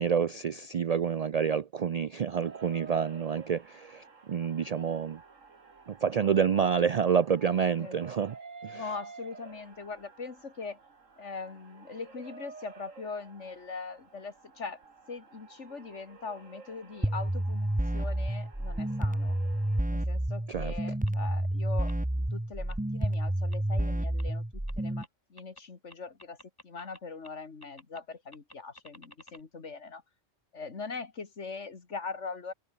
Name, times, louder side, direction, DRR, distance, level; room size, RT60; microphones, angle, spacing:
voice 1, 0.0-5.2 5.9-8.3 8.6-8.8 20.5-20.7, right 7 dB, 65° right, 0.4 m, -28 dB
sound 1, 2.4-19.8, right 4 dB, 90° right, 2.7 m, -51 dB
voice 2, 8.7-10.8 11.2-14.8 15.1-19.4 19.9-26.4 26.6-30.0 30.5-32.5, left 4 dB, 70° left, 2.4 m, -41 dB
sound 2, 17.0-25.0, right 1 dB, 5° right, 1.2 m, -30 dB
sound 3, 21.1-21.2 21.9-22.0 22.7-22.8 23.5-23.6 24.2-24.3 24.7-24.8 25.0-25.1 25.4-25.6 25.9-27.0 27.2-27.3 27.6-28.0 28.3-29.4, left 1 dB, 15° left, 5.7 m, -51 dB
omnidirectional pair, 1.3 m